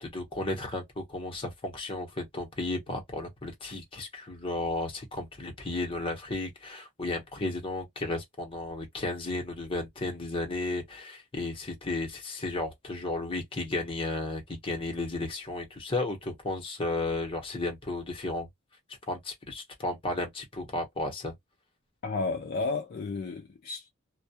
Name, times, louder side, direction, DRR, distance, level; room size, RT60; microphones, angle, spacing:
voice 1, 0.0-18.5 19.1-21.3, left 2 dB, 25° left, 0.8 m, -34 dB
voice 2, 22.0-23.9, left 3 dB, 45° left, 0.4 m, -32 dB
2.2 x 2.1 x 2.7 m
head